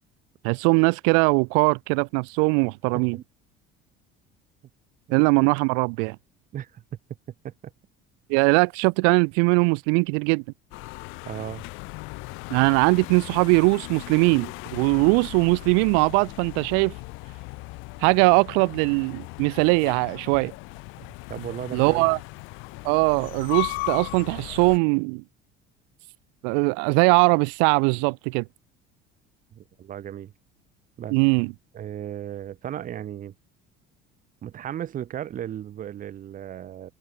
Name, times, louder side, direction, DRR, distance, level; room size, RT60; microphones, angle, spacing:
voice 1, 0.4-3.2 5.1-6.2 8.3-10.4 12.5-16.9 18.0-20.5 21.7-22.2 22.8-25.2 26.4-28.4 31.1-31.5, right 40 dB or more, 85° right, 0.5 m, -21 dB
sound 1, 10.7-24.8, left 26 dB, 75° left, 3.1 m, -37 dB
voice 2, 11.2-11.6 21.3-22.1 29.5-30.3 31.0-31.4 31.7-33.3 34.4-36.9, right 10 dB, 40° right, 3.1 m, -35 dB
cardioid pair, 135°, 20 cm